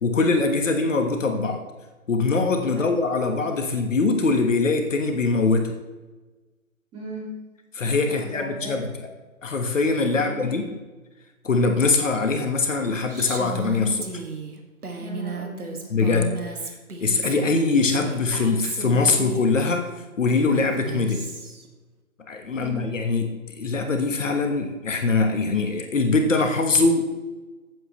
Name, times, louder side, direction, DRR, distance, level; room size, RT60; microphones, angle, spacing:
voice 1, 0.0-1.6 2.1-5.7 7.7-9.1 9.4-10.6 11.4-14.1 15.9-16.7 17.0-19.9 20.2-21.3 22.3-27.0, left 3 dB, 60° left, 4 dB, 1.4 m, -22 dB
voice 2, 6.9-7.3 8.0-8.8 10.1-10.6 15.0-15.9 22.5-22.9, right 1 dB, 10° right, -6 dB, 2.3 m, -38 dB
Female speech woman speaking, 13.1-19.5 20.3-21.7, right 4 dB, 90° right, 1.9 m, -35 dB
15.5 x 7.7 x 3.1 m, 1.2 s
figure-of-eight pair, 150°, 43 cm